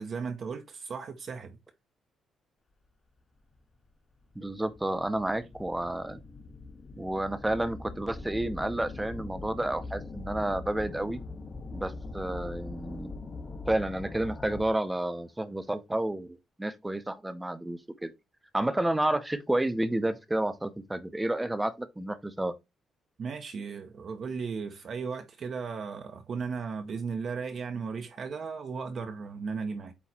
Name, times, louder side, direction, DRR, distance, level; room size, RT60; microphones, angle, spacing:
voice 1, 0.0-1.6 23.2-29.9, right 5 dB, 45° right, 0.9 m, -36 dB
sound 1, 3.5-3.6 4.3-15.0, left 3 dB, 25° left, 1.1 m, -42 dB
voice 2, 4.3-6.2 7.0-11.2 11.7-13.1 13.7-18.1 18.5-22.5, right 1 dB, 10° right, 0.8 m, -30 dB
8.5 x 3.1 x 4.3 m
cardioid pair, 135°, 0 cm